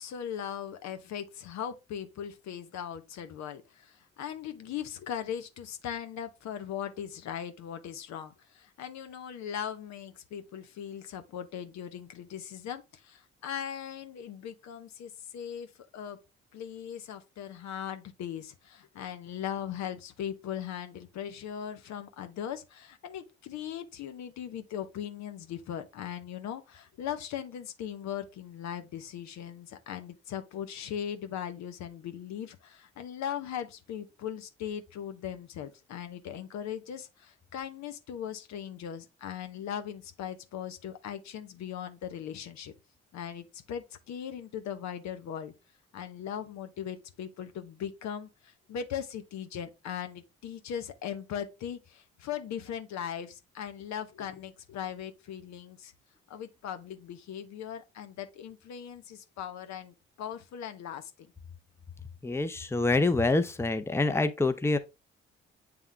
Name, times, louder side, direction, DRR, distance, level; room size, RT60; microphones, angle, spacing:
voice 1, 0.0-16.2 16.5-42.7 43.1-45.5 45.9-55.9 56.3-61.1, left 9 dB, 70° left, 1.0 m, -39 dB
voice 2, 62.2-64.8, left 2 dB, 10° left, 0.7 m, -26 dB
7.8 x 3.6 x 3.4 m
hypercardioid pair, 55°, 29 cm